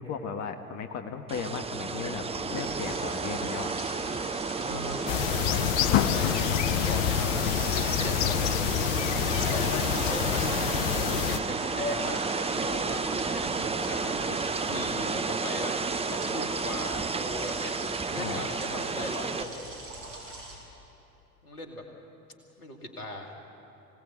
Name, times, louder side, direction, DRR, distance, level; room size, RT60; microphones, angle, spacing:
voice 1, 0.0-3.7 14.7-14.9 18.2-18.4, left 6 dB, 35° left, 6 dB, 1.4 m, -36 dB
sound 1, 1.3-19.4, right 4 dB, 15° right, 0.8 m, -32 dB
sound 2, 2.2-20.6, right 2 dB, 60° right, 5.7 m, -43 dB
voice 2, 4.6-9.1 9.5-15.7 16.1-19.7 21.4-21.8 22.6-23.3, left 1 dB, 85° left, 3 dB, 2.5 m, -38 dB
sound 3, 5.1-11.4, left 13 dB, 55° left, 0.8 m, -27 dB
25.0 x 17.5 x 8.2 m, 2.9 s
figure-of-eight pair, 70°, 44 cm